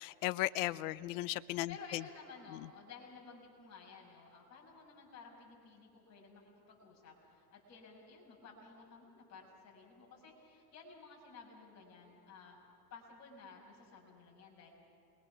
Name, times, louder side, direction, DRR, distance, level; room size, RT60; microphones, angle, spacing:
voice 1, 0.0-2.0, left 17 dB, 50° left, 18 dB, 0.6 m, -36 dB
voice 2, 1.7-12.6 12.9-14.7, left 5 dB, 30° left, -1 dB, 5.8 m, -54 dB
28.0 x 22.5 x 6.0 m, 2.7 s
supercardioid pair, 140°, 50 cm